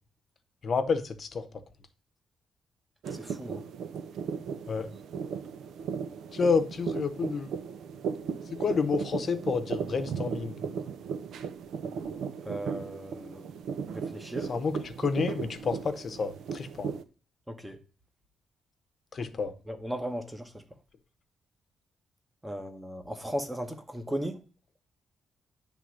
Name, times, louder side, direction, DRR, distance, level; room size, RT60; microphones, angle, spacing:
voice 1, 0.6-1.5 4.7-4.9 6.3-7.5 8.5-10.6 14.5-16.9 19.1-19.5, left 5 dB, 35° left, 0.9 m, -29 dB
sound 1, 3.0-17.0, right 6 dB, 80° right, 0.6 m, -36 dB
voice 2, 3.2-3.6 12.5-13.5 13.9-14.5 17.5-17.8 19.7-20.5 22.4-24.4, equal, 5° right, 1.0 m, -36 dB
9.9 x 3.5 x 6.2 m
wide cardioid pair, 170°, 0 cm